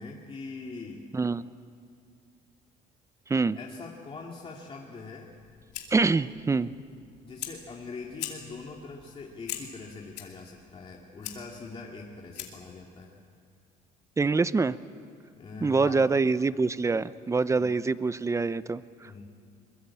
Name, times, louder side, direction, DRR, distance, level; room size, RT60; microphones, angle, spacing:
voice 1, 0.0-1.1 3.5-5.3 7.2-13.2 15.4-16.0 19.0-19.3, left 4 dB, 30° left, -1 dB, 2.2 m, -42 dB
Fire, 5.3-12.8, left 11 dB, 90° left, 2.6 m, -43 dB
voice 2, 5.9-6.7 14.2-14.8 15.6-19.3, right 4 dB, 15° right, 16 dB, 0.6 m, -25 dB
22.5 x 21.0 x 8.5 m, 2.2 s
cardioid pair, 110°, 17 cm